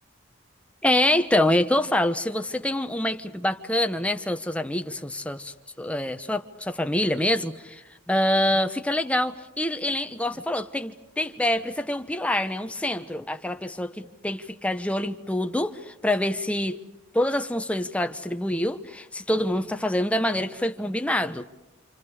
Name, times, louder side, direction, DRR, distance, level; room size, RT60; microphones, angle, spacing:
voice 1, 0.8-7.8 8.1-13.9 14.2-16.8 17.1-21.5, left 1 dB, 5° left, 1.0 m, -26 dB
29.0 x 28.0 x 4.9 m
head